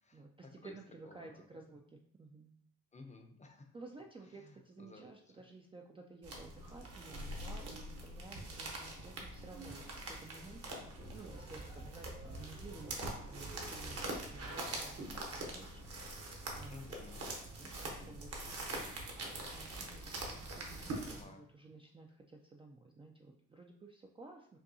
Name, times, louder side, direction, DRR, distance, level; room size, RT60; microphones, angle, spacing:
voice 1, 0.1-2.5 3.7-16.9 17.6-24.6, right 3 dB, 20° right, 1 dB, 0.3 m, -54 dB
voice 2, 1.0-1.4 2.9-3.7 4.8-5.1 16.7-17.3 21.0-21.4, left 3 dB, 25° left, 5 dB, 0.6 m, -54 dB
sound 1, 6.2-21.2, right 2 dB, 50° right, 1.0 m, -44 dB
5.3 x 2.3 x 2.7 m, 0.64 s
cardioid pair, 90°, 30 cm